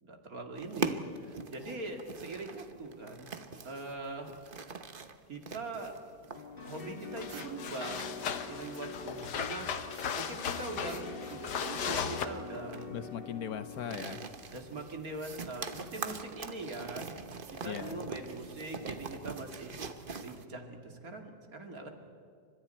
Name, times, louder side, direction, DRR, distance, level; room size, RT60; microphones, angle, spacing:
voice 1, 0.0-3.3 3.6-4.3 5.3-6.0 6.7-8.1 8.5-9.7 10.1-11.0 11.3-12.9 14.5-17.2 17.6-19.8 20.2-21.9, right 2 dB, 60° right, 3 dB, 2.8 m, -42 dB
sound 1, 0.6-20.4, right 4 dB, 35° right, 1.1 m, -43 dB
sound 2, 6.3-14.3, left 4 dB, 30° left, 2.4 m, -45 dB
sound 3, 6.7-6.8 7.2-12.3, left 7 dB, 90° left, 1.7 m, -37 dB
voice 2, 12.9-14.2 17.6-18.1, left 8 dB, 65° left, 11 dB, 1.3 m, -39 dB
29.5 x 25.5 x 4.4 m, 2.3 s
omnidirectional pair, 1.8 m